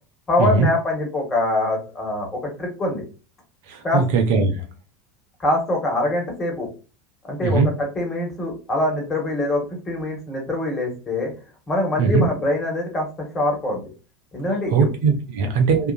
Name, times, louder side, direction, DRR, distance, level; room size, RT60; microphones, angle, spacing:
voice 1, 0.3-3.0 3.8-4.0 5.4-6.7 7.2-11.3 11.7-13.1 13.3-13.8 14.3-14.9, left 1 dB, 25° left, 0 dB, 1.3 m, -24 dB
voice 2, 3.7-4.7 7.4-7.7 12.0-12.3 14.7-15.9, right 4 dB, 60° right, 4 dB, 0.6 m, -19 dB
2.7 x 2.3 x 2.4 m, 0.33 s
figure-of-eight pair, 80°, 0 cm